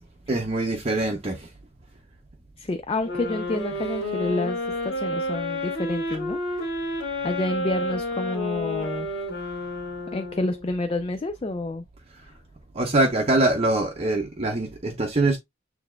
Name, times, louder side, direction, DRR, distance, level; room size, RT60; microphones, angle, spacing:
voice 1, 0.3-1.5 12.7-15.4, right 2 dB, 30° right, 0.7 m, -23 dB
voice 2, 2.6-7.0 7.2-9.1 10.1-11.8 12.2-12.3, left 2 dB, 25° left, 0.3 m, -29 dB
sound 1, 3.0-10.7, left 1 dB, 70° left, 2.1 m, -30 dB
6.9 x 3.4 x 2.2 m
head